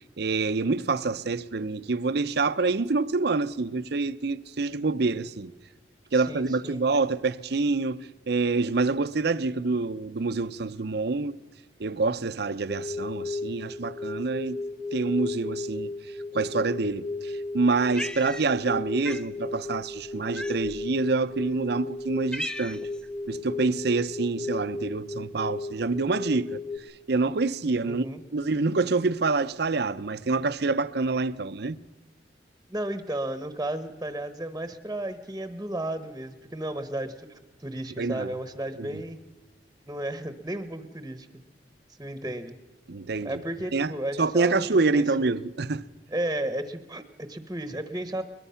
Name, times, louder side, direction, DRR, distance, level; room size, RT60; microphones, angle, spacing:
voice 1, 0.2-5.5 6.1-11.4 11.8-14.6 14.9-15.9 16.3-22.8 23.3-26.6 27.1-28.0 28.3-31.8 38.0-38.3 38.8-39.0 42.9-43.4 43.7-43.9 44.2-45.8, right 3 dB, 65° right, 0.7 m, -26 dB
voice 2, 6.1-6.8 27.8-28.2 32.7-39.2 39.9-41.3 42.0-42.5 43.2-45.3 46.1-48.2, right 1 dB, 15° right, 1.0 m, -34 dB
sound 1, 12.7-26.8, left 2 dB, 25° left, 1.6 m, -35 dB
Cat, 17.9-18.8 19.0-19.3 20.3-20.9 21.6-21.7 22.0-23.0, equal, 5° left, 0.6 m, -36 dB
22.0 x 21.5 x 5.7 m
head